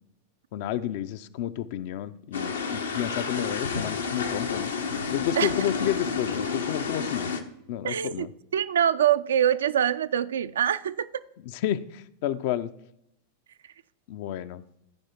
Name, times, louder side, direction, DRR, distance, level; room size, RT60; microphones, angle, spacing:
voice 1, 0.5-4.7 5.1-7.4 7.7-8.3 11.5-12.7 14.1-14.6, left 11 dB, 50° left, 0.5 m, -31 dB
sound 1, 2.3-7.4, left 5 dB, 70° left, 0.8 m, -30 dB
voice 2, 7.8-8.3 8.5-11.2, right 9 dB, 65° right, 0.4 m, -24 dB
14.0 x 4.9 x 4.4 m
figure-of-eight pair, 90°, 0 cm